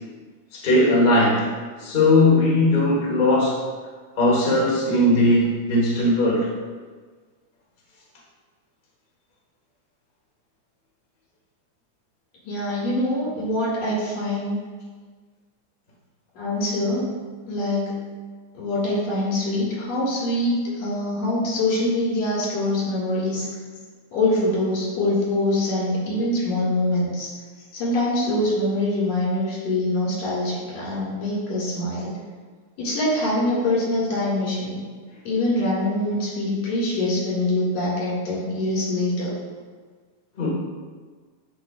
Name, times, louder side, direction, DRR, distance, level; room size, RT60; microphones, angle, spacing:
voice 1, 0.5-1.5 1.8-3.6 4.2-6.5 40.4-40.5, left 1 dB, 45° left, -5 dB, 0.6 m, -18 dB
voice 2, 12.4-14.6 16.3-17.1 17.5-18.0 18.5-23.5 24.1-27.3 27.7-32.1 32.8-34.8 35.2-39.3, left 1 dB, 65° left, -7 dB, 3.1 m, -24 dB
10.0 x 4.3 x 2.4 m, 1.5 s
omnidirectional pair, 3.4 m